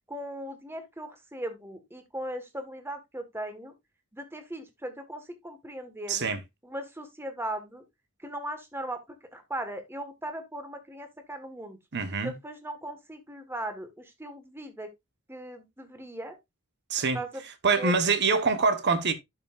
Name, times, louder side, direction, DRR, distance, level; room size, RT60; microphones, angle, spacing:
voice 1, 0.1-3.7 4.1-6.3 6.6-7.8 8.2-9.0 9.3-11.8 12.2-14.9 15.3-16.4 17.1-17.4 17.8-17.9, right 1 dB, 10° right, 1.5 m, -38 dB
voice 2, 6.1-6.4 11.9-12.3 16.9-17.2 17.6-19.1, right 4 dB, 50° right, 1.1 m, -25 dB
12.0 x 5.6 x 2.5 m
head